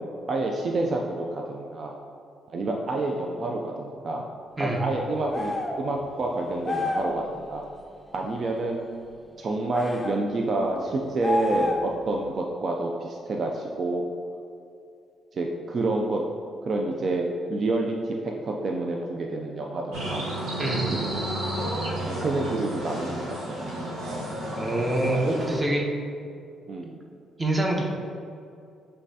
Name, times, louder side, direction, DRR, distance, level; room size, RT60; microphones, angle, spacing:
voice 1, 0.0-2.0 2.5-4.3 4.6-7.6 8.1-8.9 9.4-14.0 15.3-16.2 16.6-20.3 21.2-21.3 22.0-23.6 26.7-27.0, right 2 dB, 50° right, 0 dB, 0.4 m, -28 dB
sound 1, 5.3-5.8 6.6-7.2 9.7-10.2 11.2-12.0, left 2 dB, 15° left, 0.5 m, -28 dB
sound 2, 19.9-25.6, right 1 dB, 85° right, 1.0 m, -31 dB
voice 2, 20.6-20.9 24.6-25.8 27.4-27.9, right 1 dB, 20° right, -1 dB, 0.8 m, -25 dB
5.2 x 3.3 x 2.7 m, 2.4 s
cardioid pair, 90°, 0 cm